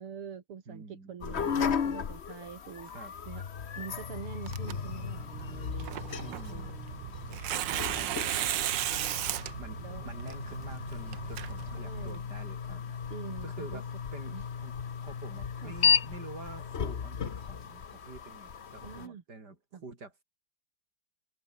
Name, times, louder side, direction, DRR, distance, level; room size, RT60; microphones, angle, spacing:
voice 1, 0.0-3.4 3.8-7.3 7.6-9.2 9.8-10.1 11.7-12.2 13.1-13.8 14.3-14.4 15.6-15.8 18.8-19.2 19.7-19.8, right 7 dB, 80° right, 3.0 m, -46 dB
voice 2, 0.7-1.2 2.9-3.1 6.2-6.7 7.7-8.2 9.6-13.0 13.4-13.9 14.1-14.7 15.0-20.2, right 3 dB, 45° right, 5.2 m, -47 dB
sound 1, 1.2-19.1, left 7 dB, 40° left, 1.0 m, -35 dB
Tearing, 4.5-12.2, right 12 dB, 65° right, 1.4 m, -36 dB
omnidirectional pair, 2.4 m